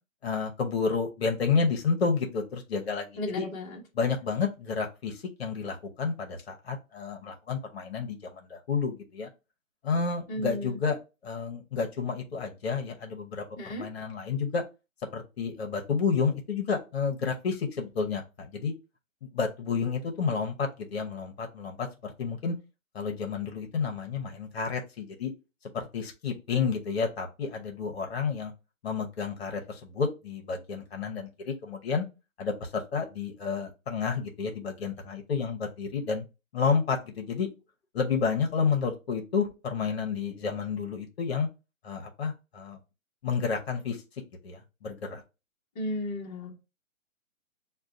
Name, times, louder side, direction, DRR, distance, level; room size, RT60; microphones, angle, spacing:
voice 1, 0.2-3.1 3.4-3.5 4.0-9.3 9.8-11.0 11.2-14.6 15.1-18.7 19.3-22.6 22.9-25.3 25.7-28.5 28.8-32.0 32.4-36.2 36.5-37.5 37.9-41.5 41.8-42.8 43.2-44.0 44.4-45.2, left 5 dB, 50° left, 0.9 m, -30 dB
voice 2, 3.2-3.8 10.3-10.8 13.6-13.9 45.7-46.7, left 1 dB, 15° left, 0.9 m, -34 dB
6.1 x 2.3 x 2.6 m
hypercardioid pair, 155°, 41 cm